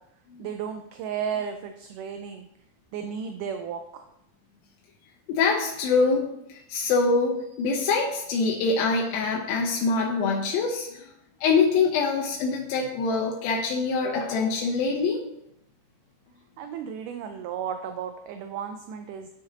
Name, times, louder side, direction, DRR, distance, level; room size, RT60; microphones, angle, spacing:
voice 1, 0.4-2.5 2.9-4.1 16.6-19.3, right 7 dB, 85° right, 7 dB, 1.8 m, -34 dB
voice 2, 5.3-6.2 6.5-11.1 11.4-15.2, left 4 dB, 80° left, 0 dB, 2.6 m, -24 dB
10.5 x 6.3 x 2.8 m, 0.80 s
omnidirectional pair, 4.2 m